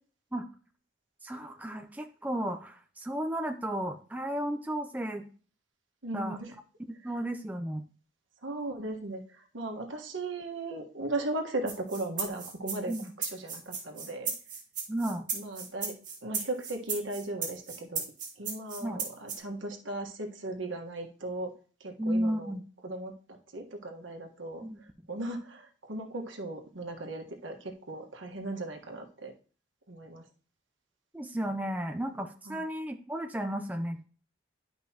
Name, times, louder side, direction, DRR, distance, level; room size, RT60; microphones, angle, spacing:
voice 1, 1.2-5.3 6.1-6.4 6.9-7.9 12.9-13.1 14.9-15.3 18.8-19.0 22.0-22.6 24.6-24.8 31.1-34.0, right 1 dB, 10° right, 5 dB, 0.5 m, -33 dB
voice 2, 6.0-6.5 8.4-12.9 13.2-14.3 15.3-18.0 18.4-21.5 21.8-22.5 22.8-24.7 25.1-29.3 29.9-30.2 32.5-32.6, right 2 dB, 85° right, 3 dB, 1.4 m, -37 dB
sound 1, 11.7-19.4, right 6 dB, 40° right, 1.9 m, -35 dB
11.0 x 5.2 x 2.9 m, 0.41 s
head